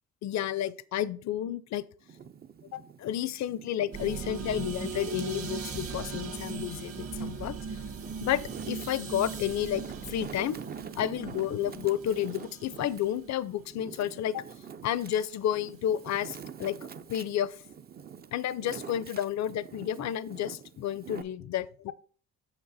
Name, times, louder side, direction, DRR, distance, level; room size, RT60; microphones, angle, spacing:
voice 1, 0.2-1.8 2.7-7.6 8.2-9.8 10.1-10.6 10.9-14.4 14.8-16.8 17.1-17.6 18.3-21.9, left 11 dB, 65° left, 0.6 m, -31 dB
Wind, 2.0-4.8 5.4-6.6 7.3-21.2, right 7 dB, 30° right, 0.5 m, -46 dB
sound 1, 3.9-15.0 15.3-15.6, right 5 dB, 50° right, 1.6 m, -39 dB
7.2 x 6.0 x 4.1 m
cardioid pair, 90°, 30 cm